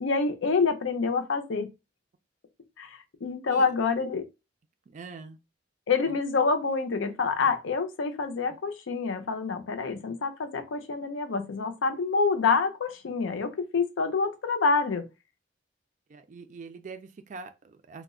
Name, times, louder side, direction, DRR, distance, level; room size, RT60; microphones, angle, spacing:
voice 1, 0.0-1.7 2.8-4.3 5.9-15.1, left 4 dB, 80° left, 0.5 m, -27 dB
voice 2, 4.9-5.4 6.1-6.2 16.1-18.0, right 4 dB, 40° right, 0.3 m, -43 dB
2.2 x 2.1 x 3.6 m
head